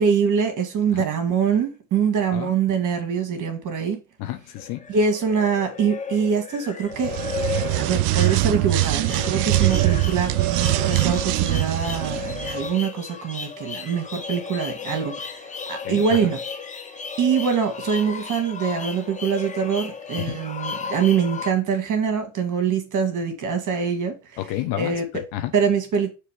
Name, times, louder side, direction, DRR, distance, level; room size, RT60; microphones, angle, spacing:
voice 1, 0.0-4.0 4.9-7.2 7.7-10.3 10.8-16.4 17.2-24.1 24.8-25.2 25.5-26.1, right 6 dB, 40° right, 2.0 m, -24 dB
voice 2, 4.2-4.8 15.8-16.0 20.3-20.4 24.4-24.9 25.3-25.5, left 14 dB, 50° left, 1.1 m, -30 dB
sound 1, 4.6-21.5, left 5 dB, 15° left, 0.7 m, -34 dB
sound 2, 6.9-12.6, right 17 dB, 65° right, 0.6 m, -22 dB
6.7 x 3.2 x 4.9 m
hypercardioid pair, 85°, 47 cm